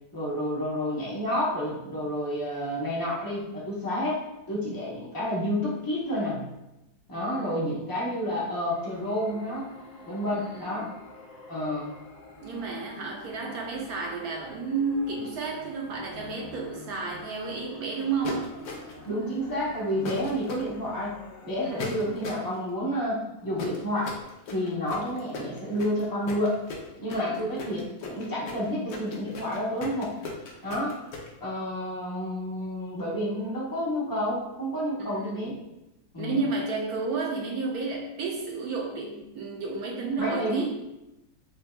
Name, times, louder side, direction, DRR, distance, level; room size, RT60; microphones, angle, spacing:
voice 1, 0.1-6.5 7.1-9.7 10.1-10.9 11.5-11.9 19.0-21.1 21.4-24.1 24.5-26.6 27.0-30.1 30.6-31.0 31.4-35.6 36.1-36.4 40.2-40.9, equal, 30° left, -6 dB, 0.3 m, -30 dB
voice 2, 7.1-7.6 10.3-10.8 12.4-18.6 21.6-21.9 27.1-27.4 35.0-35.4 36.2-40.8, right 4 dB, 70° right, -1 dB, 0.9 m, -32 dB
sound 1, 8.5-22.2, left 3 dB, 80° left, 1.6 m, -48 dB
sound 2, 18.2-19.1 20.0-20.6 21.8-22.5 23.6-31.3, left 3 dB, 65° left, 1.0 m, -37 dB
6.7 x 2.3 x 2.3 m, 0.93 s
omnidirectional pair, 2.0 m